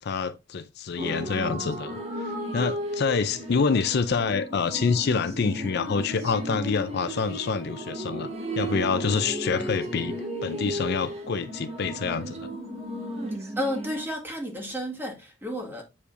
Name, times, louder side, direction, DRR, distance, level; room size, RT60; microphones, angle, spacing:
voice 1, 0.0-8.3 8.5-12.5, left 5 dB, 55° left, 0.5 m, -27 dB
sound 1, 1.0-14.0, right 1 dB, 35° right, 1.3 m, -34 dB
voice 2, 13.3-15.8, equal, 10° right, 1.9 m, -32 dB
8.3 x 4.9 x 2.5 m
head